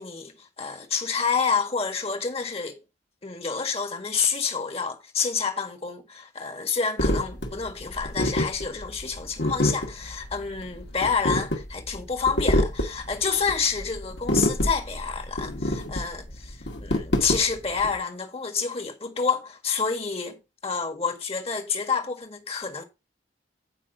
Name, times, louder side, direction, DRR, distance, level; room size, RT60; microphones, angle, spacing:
voice 1, 0.0-2.8 3.2-22.8, left 5 dB, 30° left, 1.6 m, -28 dB
sound 1, 7.0-17.9, left 1 dB, 65° left, 2.1 m, -27 dB
16.0 x 5.4 x 2.7 m
head